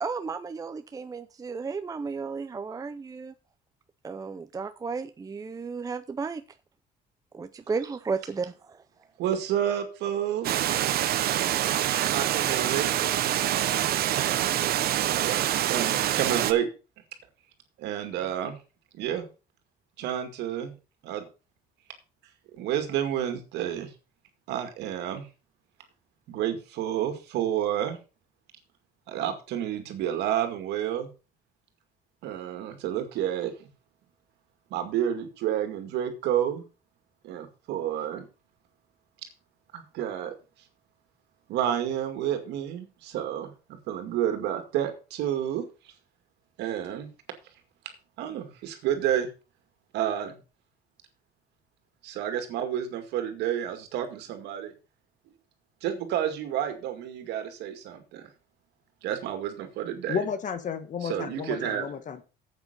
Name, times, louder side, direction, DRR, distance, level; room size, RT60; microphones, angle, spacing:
voice 1, 0.0-3.3 4.0-6.4 7.3-8.8, right 5 dB, 20° right, 0.6 m, -33 dB
voice 2, 9.2-10.9 12.0-12.9 14.2-14.6 15.0-16.7 17.8-18.6 18.9-19.3 20.0-20.7 21.0-21.3 22.5-23.9 24.5-25.3 26.3-28.0 29.1-31.1 32.2-33.7 34.7-36.6 37.2-38.3 39.7-40.3 41.5-45.7 46.6-47.1 48.2-49.3 49.9-50.4 52.0-54.7 55.8-58.3 59.0-60.2 61.0-61.9, right 10 dB, 85° right, 2.1 m, -30 dB
Water, 10.4-16.5, right 12 dB, 65° right, 0.9 m, -26 dB
voice 3, 60.1-62.2, left 6 dB, 50° left, 1.5 m, -32 dB
8.7 x 8.1 x 5.3 m
cardioid pair, 110°, 17 cm